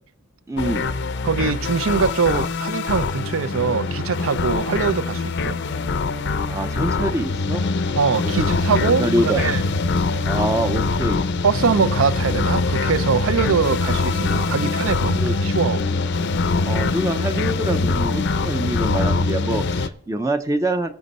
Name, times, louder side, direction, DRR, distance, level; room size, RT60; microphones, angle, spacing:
voice 1, 0.5-0.9 6.5-7.6 8.2-8.5 8.9-9.4 10.3-11.2 15.1-15.5 16.7-20.9, right 1 dB, 15° right, 0.5 m, -25 dB
sound 1, 0.6-19.9, left 3 dB, 55° left, 0.6 m, -23 dB
voice 2, 1.2-5.6 7.9-9.6 11.4-15.8, right 5 dB, 65° right, 0.5 m, -22 dB
19.5 x 6.8 x 4.2 m
head